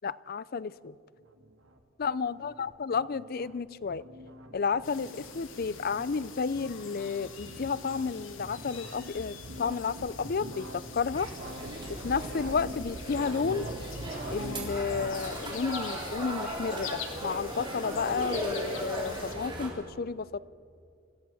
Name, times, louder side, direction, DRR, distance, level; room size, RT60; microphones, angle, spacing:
voice 1, 0.0-0.9 2.0-4.0 4.5-11.3 11.9-13.7 14.3-20.4, left 5 dB, 45° left, 18 dB, 0.5 m, -32 dB
sound 1, 1.1-15.1, equal, 70° right, 1.8 m, -44 dB
sound 2, 4.8-19.3, left 6 dB, 75° left, 2.4 m, -45 dB
sound 3, 11.1-19.7, right 1 dB, 25° right, 3.9 m, -37 dB
25.5 x 15.5 x 7.1 m, 2.4 s
head